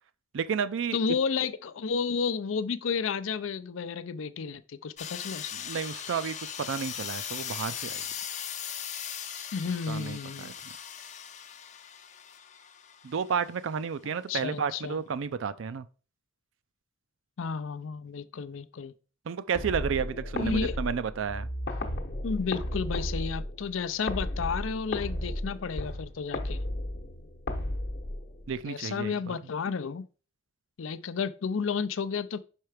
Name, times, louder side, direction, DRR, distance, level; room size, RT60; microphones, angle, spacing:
voice 1, 0.3-1.0 5.5-7.9 9.9-10.5 13.0-15.9 19.3-21.5 28.5-29.4, right 6 dB, 75° right, 0.4 m, -32 dB
voice 2, 0.9-5.5 9.5-10.5 14.3-15.0 17.4-18.9 20.4-20.8 22.2-26.6 28.7-30.1 30.8-32.4, left 5 dB, 85° left, 0.5 m, -32 dB
sound 1, 5.0-13.6, left 9 dB, 35° left, 0.5 m, -39 dB
sound 2, 19.5-28.6, left 1 dB, 50° left, 0.9 m, -34 dB
5.6 x 4.5 x 4.9 m
head